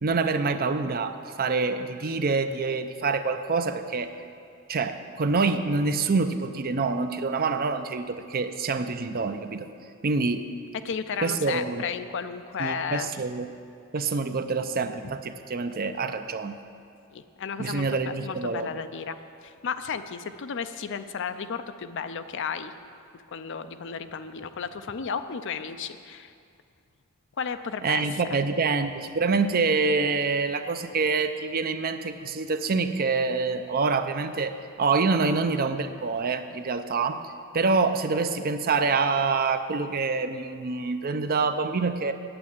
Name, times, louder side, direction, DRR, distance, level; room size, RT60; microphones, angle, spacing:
voice 1, 0.0-4.1 4.7-9.7 10.0-10.4 11.2-11.9 12.6-13.5 13.9-16.5 17.6-18.7 27.8-37.2 37.5-42.1, right 4 dB, 45° right, 9 dB, 0.5 m, -26 dB
voice 2, 10.8-13.1 17.1-22.7 23.3-26.3 27.4-28.4, left 6 dB, 60° left, 10 dB, 0.5 m, -33 dB
8.8 x 8.2 x 8.7 m, 2.4 s
head